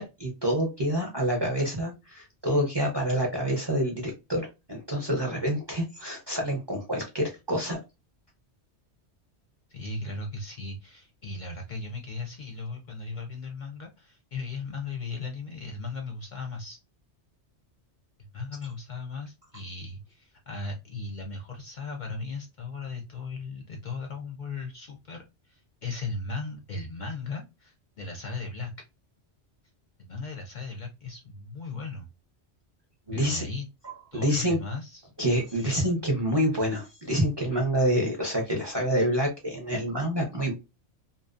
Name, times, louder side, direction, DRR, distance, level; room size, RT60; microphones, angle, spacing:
voice 1, 0.0-7.8 33.1-33.4 34.1-34.6 35.2-40.6, equal, 30° right, 0 dB, 0.5 m, -27 dB
voice 2, 9.7-16.8 18.3-28.7 30.0-32.1 33.1-33.7 34.1-35.1 35.5-35.9, left 3 dB, 55° left, 2 dB, 0.6 m, -37 dB
2.6 x 2.0 x 2.3 m, 0.25 s
omnidirectional pair, 1.1 m